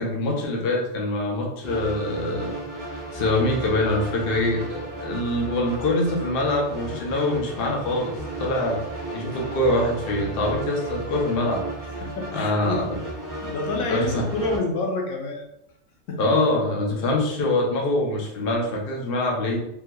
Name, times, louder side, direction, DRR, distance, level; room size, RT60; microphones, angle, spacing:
voice 1, 0.0-2.5 3.1-8.1 8.4-8.8 9.1-11.6 12.3-12.9 13.9-14.2 16.2-19.6, left 1 dB, 55° left, -1 dB, 0.8 m, -24 dB
sound 1, 1.6-14.6, right 2 dB, 20° right, 0.6 m, -34 dB
voice 2, 12.0-12.9 13.4-15.4 16.1-16.2, left 2 dB, 85° left, 0 dB, 1.1 m, -28 dB
3.5 x 2.8 x 2.2 m, 0.81 s
omnidirectional pair, 1.4 m